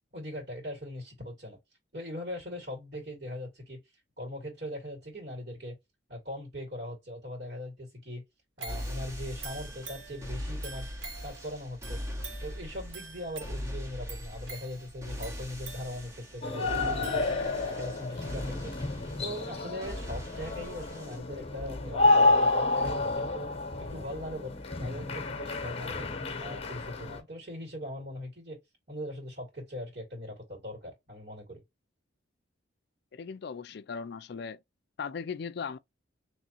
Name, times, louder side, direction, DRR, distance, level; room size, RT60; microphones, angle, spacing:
voice 1, 0.1-1.6 1.9-3.8 4.2-5.8 6.1-8.2 8.6-10.9 11.2-12.0 12.4-17.2 17.6-18.7 19.2-23.5 23.9-24.5 24.8-26.1 26.4-28.6 28.9-31.6, left 1 dB, 55° right, 2.0 m, -40 dB
sound 1, 8.6-17.8 18.3-18.4, right 5 dB, 75° right, 1.1 m, -48 dB
sound 2, 8.7-21.2, equal, 15° right, 0.8 m, -41 dB
sound 3, 16.4-27.2, left 2 dB, 30° left, 0.9 m, -29 dB
voice 2, 33.1-34.6 35.0-35.8, left 6 dB, 55° left, 0.4 m, -38 dB
3.6 x 3.0 x 2.9 m
head